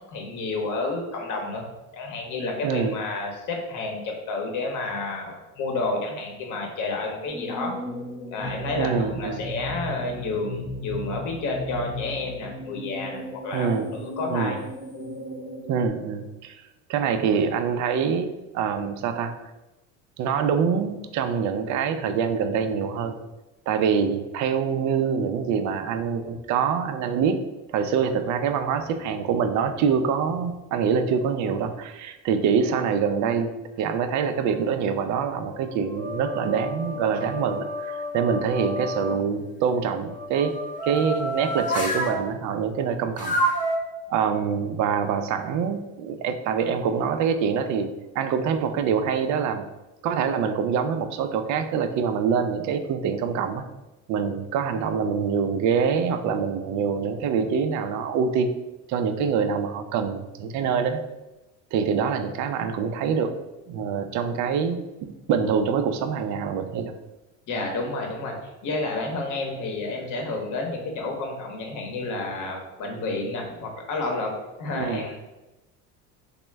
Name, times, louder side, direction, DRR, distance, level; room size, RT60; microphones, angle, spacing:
voice 1, 0.1-1.6 1.9-7.7 8.3-14.6 67.5-68.4 68.6-74.3 74.6-75.2, left 3 dB, 50° left, 2 dB, 0.9 m, -30 dB
voice 2, 2.6-2.9 8.8-9.4 13.5-13.9 14.3-14.6 15.7-16.6 16.9-19.3 20.2-23.2 23.7-27.4 27.7-40.5 40.8-43.3 44.1-47.9 48.1-49.6 50.0-53.7 54.1-58.5 58.9-61.0 61.7-63.3 63.7-64.8 65.3-66.9 74.7-75.0, right 6 dB, 50° right, 8 dB, 0.4 m, -25 dB
sound 1, 7.3-15.9, equal, 10° right, 0.8 m, -36 dB
sound 2, 34.1-34.6 35.2-39.2 40.0-42.2 43.2-43.8, equal, 20° left, 0.6 m, -30 dB
3.0 x 2.1 x 3.3 m, 1.0 s
supercardioid pair, 85°, 38 cm